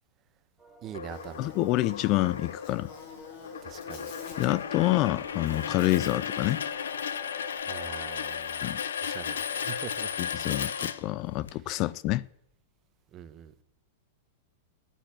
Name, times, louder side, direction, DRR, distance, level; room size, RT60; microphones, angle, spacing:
sound 1, 0.6-7.6, right 4 dB, 5° right, 4.3 m, -54 dB
voice 1, 0.8-1.5 3.6-4.1 7.7-8.7 9.0-10.2 13.1-13.5, right 10 dB, 35° right, 1.2 m, -43 dB
sound 2, 0.9-11.5, left 7 dB, 80° left, 0.9 m, -35 dB
Buzz, 1.0-6.7, left 5 dB, 60° left, 3.6 m, -47 dB
voice 2, 1.4-2.9 4.4-6.6 8.6-8.8 10.2-12.2, left 17 dB, 45° left, 0.5 m, -27 dB
14.0 x 9.2 x 9.2 m
hypercardioid pair, 110°, 0 cm